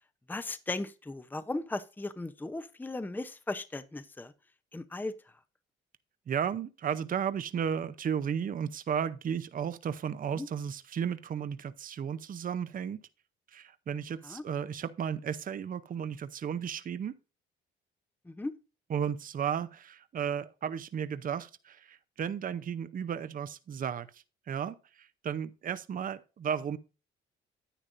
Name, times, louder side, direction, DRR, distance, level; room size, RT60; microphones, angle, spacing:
voice 1, 0.3-4.3 4.7-5.1 10.3-10.5 14.2-14.5 18.3-18.5, left 2 dB, 10° left, 0.6 m, -37 dB
voice 2, 6.3-13.0 13.5-17.2 18.9-26.8, right 8 dB, 45° right, 0.6 m, -34 dB
10.0 x 8.8 x 2.5 m
cardioid pair, 80°, 21 cm